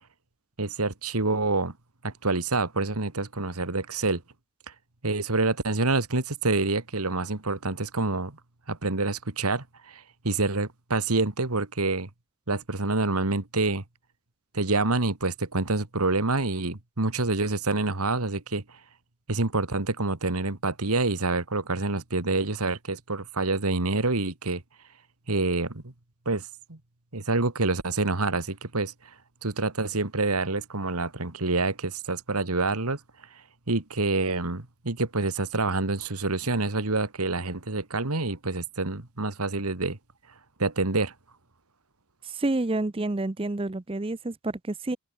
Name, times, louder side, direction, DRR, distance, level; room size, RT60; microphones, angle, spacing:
voice 1, 0.6-1.7 2.0-4.2 5.0-8.4 8.7-12.1 12.5-13.8 14.5-18.6 19.3-24.6 25.3-25.9 26.3-26.8 27.1-28.9 29.4-33.0 33.7-40.0 40.6-41.1, right 3 dB, 90° right, 2.1 m, -27 dB
voice 2, 42.3-45.0, right 2 dB, 25° right, 0.6 m, -29 dB
head